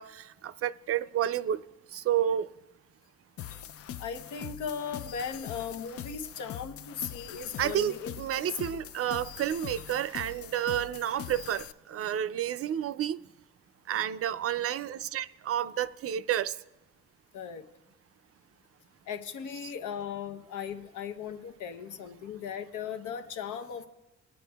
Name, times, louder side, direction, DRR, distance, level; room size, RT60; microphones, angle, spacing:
voice 1, 0.0-1.6 1.9-2.5 7.6-13.2 13.9-16.6 19.6-19.7, right 11 dB, 50° right, 0.4 m, -30 dB
sound 1, 3.4-11.7, left 10 dB, 50° left, 0.4 m, -42 dB
voice 2, 4.0-8.1 17.3-17.7 19.1-23.9, left 7 dB, 80° left, 0.8 m, -37 dB
21.0 x 9.0 x 2.3 m
cardioid pair, 90°, 30 cm